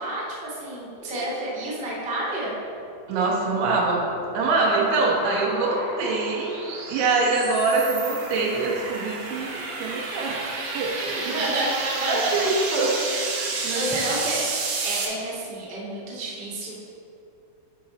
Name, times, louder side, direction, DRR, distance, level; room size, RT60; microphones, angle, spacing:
voice 1, 0.0-2.5 11.1-11.7 11.9-12.5 13.7-16.8, right 1 dB, 30° right, -6 dB, 1.0 m, -30 dB
sound 1, 1.0-2.0 4.3-6.5 8.2-9.6 10.7-13.0, left 1 dB, 75° left, 4.1 m, -41 dB
voice 2, 3.1-4.0 4.3-6.6 6.9-12.9 13.2-13.9, right 3 dB, 85° right, -2 dB, 3.3 m, -25 dB
sound 2, 3.6-15.1, right 3 dB, 65° right, 2.0 m, -32 dB
11.0 x 5.3 x 4.2 m, 2.6 s
omnidirectional pair, 4.6 m